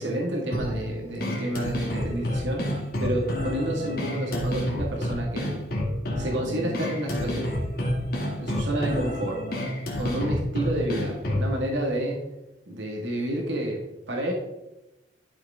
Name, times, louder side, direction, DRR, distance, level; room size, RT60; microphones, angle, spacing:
voice 1, 0.0-2.7 3.0-5.5 6.2-7.5 8.4-9.4 10.0-12.2 12.7-14.3, right 1 dB, 75° right, -1 dB, 1.9 m, -30 dB
sound 1, 0.5-11.5, left 1 dB, 55° left, 2.4 m, -29 dB
12.0 x 6.7 x 3.6 m, 0.99 s
head